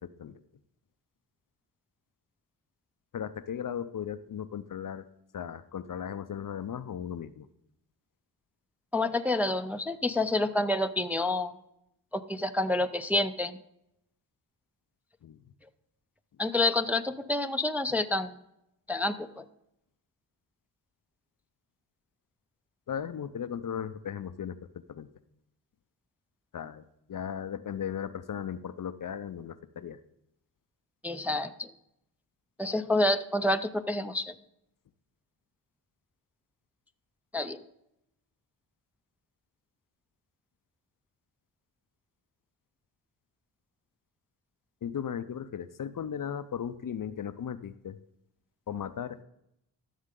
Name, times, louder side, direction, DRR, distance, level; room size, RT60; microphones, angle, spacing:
voice 1, 0.0-0.4 3.1-5.1 5.3-7.5 15.2-15.4 22.9-24.6 24.9-25.1 26.5-26.8 27.1-30.0 44.8-48.0 48.7-49.2, left 8 dB, 45° left, 12 dB, 0.6 m, -36 dB
voice 2, 8.9-11.5 12.1-13.6 16.4-18.4 18.9-19.4 31.0-31.7 32.6-34.3 37.3-37.6, left 2 dB, 5° right, 8 dB, 0.5 m, -28 dB
13.5 x 6.4 x 3.7 m, 0.81 s
cardioid pair, 55°, 45 cm